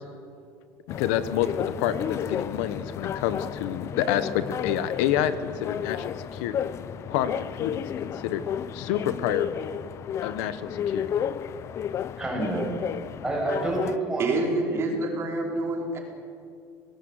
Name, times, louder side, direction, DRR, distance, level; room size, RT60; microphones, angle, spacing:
voice 1, 0.9-6.6 7.1-8.4 8.7-9.7 10.2-11.1, left 10 dB, 90° left, 12 dB, 1.3 m, -28 dB
sound 1, 0.9-14.0, left 9 dB, 40° left, 0.8 m, -32 dB
voice 2, 12.2-12.6 13.2-15.1, right 2 dB, 5° right, -2 dB, 7.4 m, -29 dB
voice 3, 14.2-16.0, right 2 dB, 35° right, 0 dB, 4.8 m, -27 dB
27.5 x 19.0 x 8.2 m, 2.4 s
cardioid pair, 145°, 8 cm